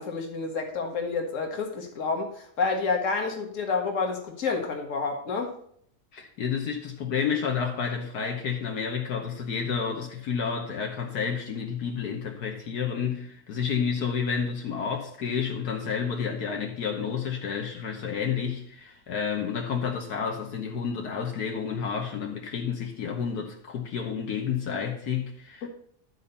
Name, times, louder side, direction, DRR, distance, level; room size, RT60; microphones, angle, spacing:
voice 1, 0.0-5.6 25.6-25.7, left 4 dB, 55° left, 1.8 m, -29 dB
voice 2, 6.1-25.7, left 6 dB, 80° left, 1.7 m, -30 dB
11.5 x 4.1 x 6.8 m
omnidirectional pair, 1.7 m